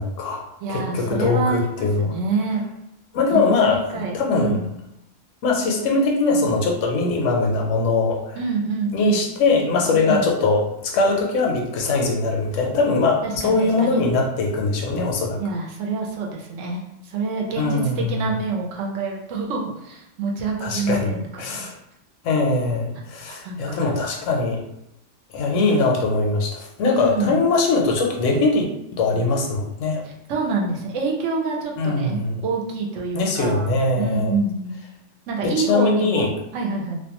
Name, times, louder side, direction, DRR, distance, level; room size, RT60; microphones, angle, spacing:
voice 1, 0.0-2.1 3.1-4.6 5.4-8.4 8.9-15.4 17.6-18.2 20.6-21.1 21.4-21.7 22.2-24.6 25.3-28.7 29.0-30.0 31.8-32.4 33.1-34.3 35.4-36.3, left 3 dB, 80° left, 0 dB, 0.9 m, -21 dB
voice 2, 0.6-2.6 3.3-4.7 8.4-9.2 9.9-10.3 13.2-14.0 15.4-21.7 23.2-23.9 26.8-27.4 30.0-34.8 35.3-37.0, right 4 dB, 80° right, -1 dB, 1.0 m, -27 dB
2.5 x 2.1 x 2.8 m, 0.84 s
omnidirectional pair, 1.3 m